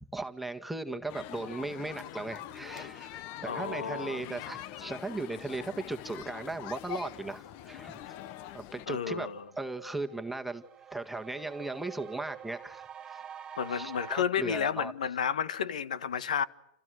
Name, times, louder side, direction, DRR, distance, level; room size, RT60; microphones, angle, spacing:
voice 1, 0.1-8.0 8.5-9.3 9.6-10.6 10.9-13.2 13.7-14.9, right 2 dB, 5° right, 1.8 m, -37 dB
sound 1, 1.1-8.9, left 12 dB, 50° left, 1.2 m, -44 dB
voice 2, 3.4-4.4 8.9-9.4 13.6-16.4, left 7 dB, 80° left, 1.5 m, -31 dB
sound 2, 8.4-8.5 8.8-14.1, right 8 dB, 20° right, 1.7 m, -47 dB
29.5 x 29.0 x 6.5 m
hypercardioid pair, 105°, 4 cm